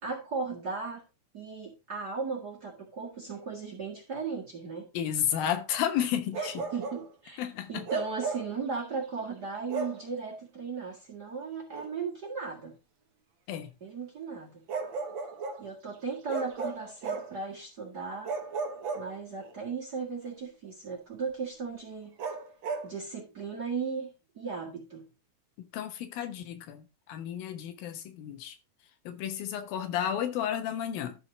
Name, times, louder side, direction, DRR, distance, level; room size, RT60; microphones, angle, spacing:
voice 1, 0.0-1.0 1.3-4.9 6.4-12.7 13.8-14.5 15.6-18.3 18.9-22.1 22.8-24.1 24.3-25.0, right 5 dB, 35° right, 1.7 m, -36 dB
voice 2, 4.9-6.6 7.4-7.8 13.5-13.7 25.7-26.8 27.1-28.6 29.1-31.2, left 10 dB, 80° left, 2.9 m, -32 dB
Bark, 6.3-7.1 7.9-8.6 9.7-10.1 11.7-11.9 14.7-15.7 16.3-17.4 18.2-19.5 22.2-22.9, right 4 dB, 70° right, 1.1 m, -35 dB
13.5 x 4.6 x 3.9 m
omnidirectional pair, 4.1 m